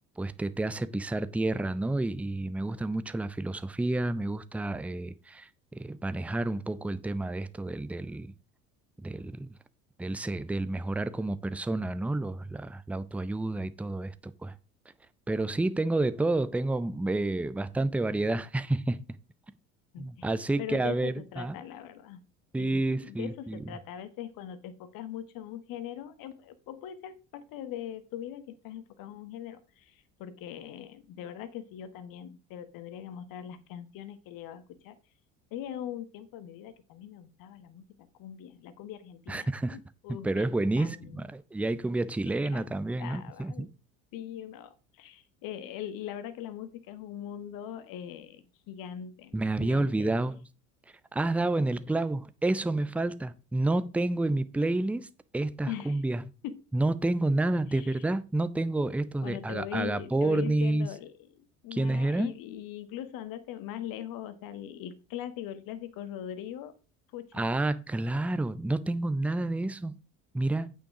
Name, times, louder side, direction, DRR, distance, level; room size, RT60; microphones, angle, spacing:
voice 1, 0.2-8.3 9.0-9.5 10.0-14.5 15.3-19.0 20.0-21.6 22.5-23.6 39.3-39.8 40.1-43.7 49.3-50.5 51.1-55.1 55.3-56.2 56.7-60.9 61.7-62.3 67.3-70.0 70.3-70.7, right 2 dB, 5° right, 0.5 m, -29 dB
voice 2, 19.9-20.3 20.6-22.2 22.6-34.9 35.5-41.2 42.2-42.7 43.0-43.7 44.1-50.1 55.7-56.0 56.4-56.6 57.7-58.1 59.2-66.8 67.1-67.5, left 10 dB, 55° left, 1.4 m, -41 dB
8.8 x 5.5 x 4.9 m
hypercardioid pair, 65°, 41 cm